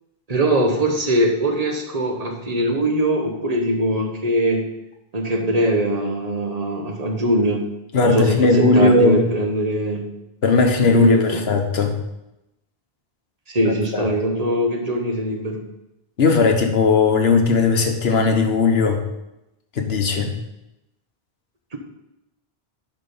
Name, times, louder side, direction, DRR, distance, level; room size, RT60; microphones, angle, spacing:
voice 1, 0.3-4.6 5.1-7.6 8.0-10.1 10.8-11.4 13.5-15.6, right 1 dB, 40° right, 3 dB, 1.3 m, -21 dB
voice 2, 7.9-9.2 10.4-12.0 13.6-14.1 16.2-19.0 19.8-20.3, left 3 dB, 85° left, 4 dB, 1.3 m, -17 dB
10.0 x 4.4 x 5.5 m, 0.91 s
omnidirectional pair, 1.0 m